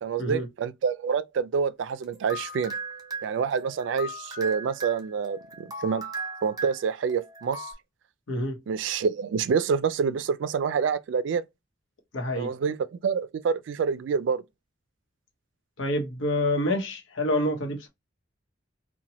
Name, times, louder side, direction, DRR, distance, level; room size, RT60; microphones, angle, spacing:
voice 1, 0.0-2.7 3.2-6.0 6.4-7.7 8.7-11.4 12.3-14.4, right 6 dB, 70° right, 0.3 m, -27 dB
sound 1, 1.9-7.7, right 2 dB, 20° right, 0.6 m, -38 dB
voice 2, 12.1-12.5 15.8-17.9, left 1 dB, 80° left, 0.9 m, -27 dB
2.9 x 2.2 x 2.8 m
head